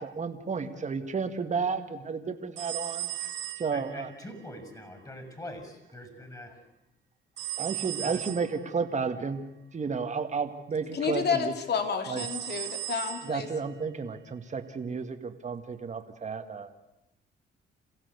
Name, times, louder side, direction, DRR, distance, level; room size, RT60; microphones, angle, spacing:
voice 1, 0.0-3.1 3.6-4.1 7.6-9.4 9.7-11.5 12.1-12.2 13.2-16.7, right 5 dB, 35° right, 6 dB, 2.1 m, -32 dB
sound 1, 2.6-4.2 7.4-8.6 12.2-13.5, right 14 dB, 65° right, 1.7 m, -37 dB
voice 2, 3.7-6.6 8.0-8.2, left 1 dB, 15° left, 7 dB, 6.2 m, -43 dB
voice 3, 10.9-13.5, left 6 dB, 55° left, 6 dB, 3.0 m, -30 dB
27.0 x 16.0 x 8.2 m, 0.88 s
cardioid pair, 90°, 20 cm